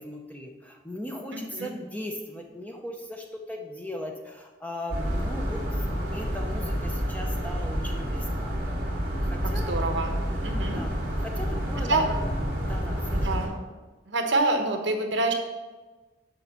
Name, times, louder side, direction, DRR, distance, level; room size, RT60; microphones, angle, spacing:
voice 1, 0.0-5.6 5.9-8.6 9.2-9.7 10.7-12.0 12.6-13.3, left 1 dB, 10° left, 2 dB, 0.6 m, -38 dB
voice 2, 1.3-1.7 9.4-10.2 10.4-10.8 11.8-12.1 13.1-13.5 14.1-15.3, right 2 dB, 65° right, 4 dB, 1.0 m, -27 dB
sound 1, 4.9-13.5, equal, 45° right, 2.2 m, -29 dB
6.8 x 5.6 x 5.7 m, 1.3 s
head